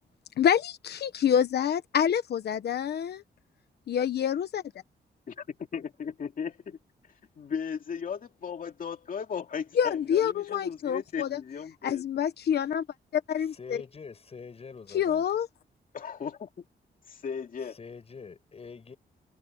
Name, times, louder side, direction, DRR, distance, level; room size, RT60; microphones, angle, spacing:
voice 1, 0.4-3.2 3.9-4.6 9.8-11.4 11.8-12.8 13.1-13.8 14.9-15.5, left 9 dB, 75° left, 1.1 m, -27 dB
voice 2, 5.3-6.8 7.4-12.0 15.9-16.7 17.1-17.8, left 6 dB, 55° left, 2.6 m, -36 dB
voice 3, 13.5-15.2 17.7-19.0, left 5 dB, 35° left, 6.6 m, -45 dB
wide cardioid pair, 160°, 17 cm